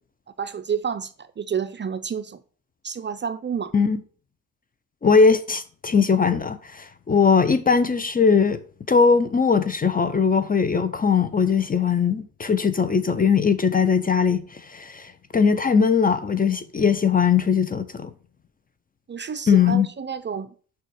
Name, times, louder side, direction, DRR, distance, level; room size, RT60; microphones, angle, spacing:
voice 1, 0.4-2.4 2.8-3.7 19.1-20.5, right 7 dB, 30° right, 0.5 m, -29 dB
voice 2, 5.0-8.6 8.9-18.1 19.5-19.9, left 5 dB, 25° left, 0.6 m, -20 dB
5.5 x 4.1 x 6.1 m
cardioid pair, 75°, 36 cm